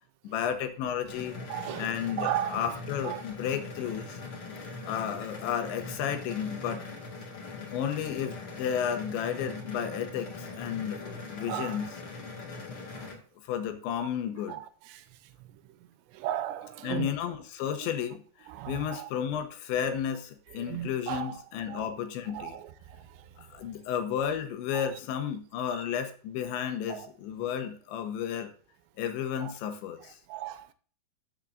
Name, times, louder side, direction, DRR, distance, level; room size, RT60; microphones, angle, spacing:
voice 1, 0.2-1.3 1.8-4.2 4.8-6.8 7.7-12.0 13.4-14.6 16.8-18.2 18.7-22.6 23.4-28.5 29.0-30.2, left 8 dB, 85° left, 3.4 m, -32 dB
sound 1, 1.1-13.1, left 3 dB, 50° left, 1.7 m, -41 dB
voice 2, 1.5-2.6 3.0-3.2 11.5-11.8 14.5-14.7 16.2-17.1 18.5-19.1 20.7-21.3 21.7-21.9 22.3-22.6 24.7-24.8 26.9-27.0 29.4-29.5 30.3-30.7, right 12 dB, 85° right, 2.7 m, -35 dB
13.0 x 7.3 x 2.5 m
omnidirectional pair, 5.0 m